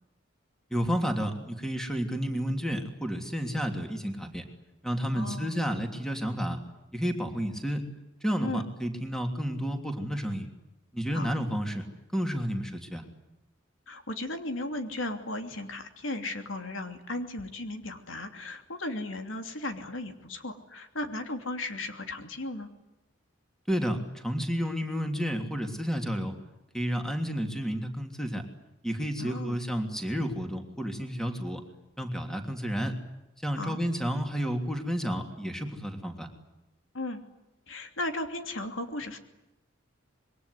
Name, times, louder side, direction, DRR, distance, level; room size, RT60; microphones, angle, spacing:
voice 1, 0.7-4.4 4.8-6.6 6.9-7.9 8.2-10.5 10.9-11.8 12.1-13.0 23.7-26.3 26.7-28.4 28.8-31.6 32.0-33.0 33.4-36.3, equal, 5° left, 4 dB, 3.1 m, -31 dB
voice 2, 5.1-5.5 8.4-8.7 11.1-11.3 13.9-22.7 29.2-29.6 33.5-33.8 36.9-37.2 37.7-39.2, left 2 dB, 80° left, 6 dB, 2.9 m, -36 dB
26.5 x 22.5 x 9.7 m, 0.94 s
head